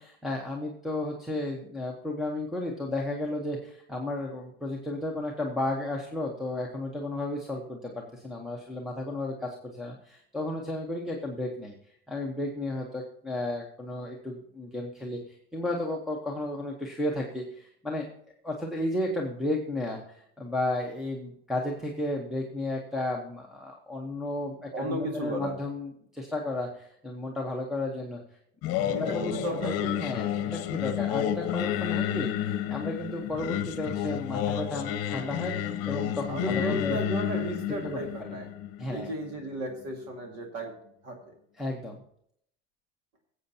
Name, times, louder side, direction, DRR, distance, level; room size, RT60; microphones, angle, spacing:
voice 1, 0.0-11.7 12.1-18.1 18.4-28.2 29.0-37.0 37.7-38.0 38.8-39.1 41.6-42.0, left 1 dB, ahead, -2 dB, 1.0 m, -33 dB
voice 2, 24.7-25.6 28.9-30.0 30.3-30.5 36.3-38.5 38.9-40.7 41.0-41.3, right 1 dB, 50° right, 2 dB, 2.0 m, -34 dB
Singing, 28.6-39.7, left 11 dB, 45° left, 1.0 m, -31 dB
16.0 x 8.0 x 2.8 m, 0.69 s
supercardioid pair, 150°, 33 cm